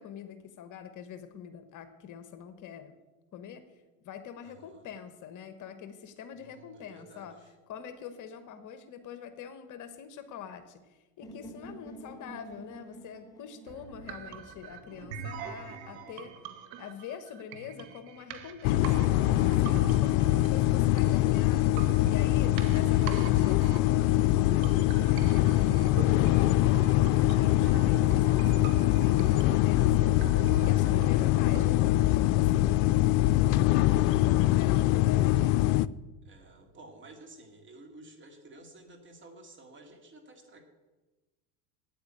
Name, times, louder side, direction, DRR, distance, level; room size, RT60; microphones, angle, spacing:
voice 1, 0.0-2.9 3.3-3.6 4.0-7.3 7.7-16.3 16.8-19.1 19.6-21.7 22.1-24.5 24.8-30.1 30.6-33.0 33.5-35.6, left 8 dB, 45° left, 10 dB, 1.3 m, -45 dB
voice 2, 4.4-4.8 6.4-7.3 19.9-20.4 33.5-34.5 36.2-40.6, right 2 dB, 30° right, 4 dB, 2.5 m, -53 dB
sound 1, 11.2-15.2, equal, 10° left, 2.3 m, -49 dB
sound 2, 13.7-31.7, right 6 dB, 60° right, 1.6 m, -44 dB
sound 3, 18.6-35.9, left 15 dB, 70° left, 0.5 m, -23 dB
9.2 x 8.7 x 8.9 m, 1.2 s
supercardioid pair, 105°, 41 cm